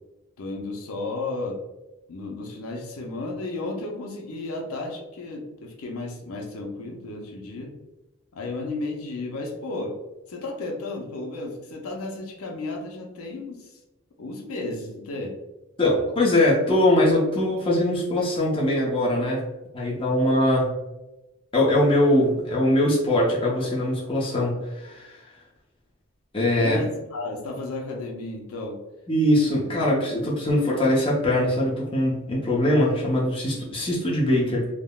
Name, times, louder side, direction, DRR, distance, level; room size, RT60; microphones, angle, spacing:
voice 1, 0.4-1.6 2.1-7.7 8.3-10.0 10.3-13.7 14.2-15.3 26.6-28.8, left 2 dB, 90° left, 1 dB, 0.5 m, -33 dB
voice 2, 15.8-19.4 19.7-20.7 21.5-25.2 26.3-26.8 29.1-34.7, left 1 dB, 25° left, -5 dB, 0.6 m, -22 dB
3.5 x 2.0 x 2.3 m, 1.0 s
head